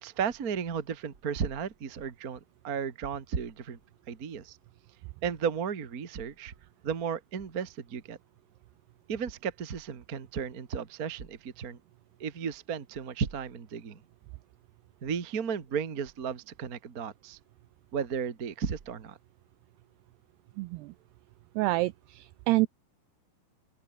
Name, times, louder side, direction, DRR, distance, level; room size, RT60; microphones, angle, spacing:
voice 1, 0.0-3.8 4.1-4.6 5.2-6.5 6.8-8.2 9.1-11.8 12.2-14.0 15.0-17.4 17.9-19.2, right 7 dB, 55° right, 0.9 m, -34 dB
voice 2, 20.6-20.9 21.6-22.7, right 20 dB, 85° right, 2.3 m, -28 dB
open air
omnidirectional pair, 5.3 m